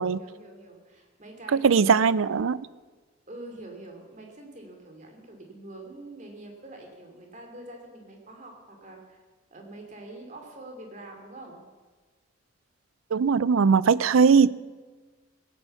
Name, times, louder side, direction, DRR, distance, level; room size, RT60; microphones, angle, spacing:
voice 1, 0.2-1.8 3.3-9.2 9.5-11.6, right 2 dB, 35° right, 3 dB, 2.7 m, -45 dB
voice 2, 1.5-2.6 13.1-14.5, right 5 dB, 75° right, 19 dB, 0.4 m, -20 dB
16.5 x 9.0 x 7.1 m, 1.4 s
head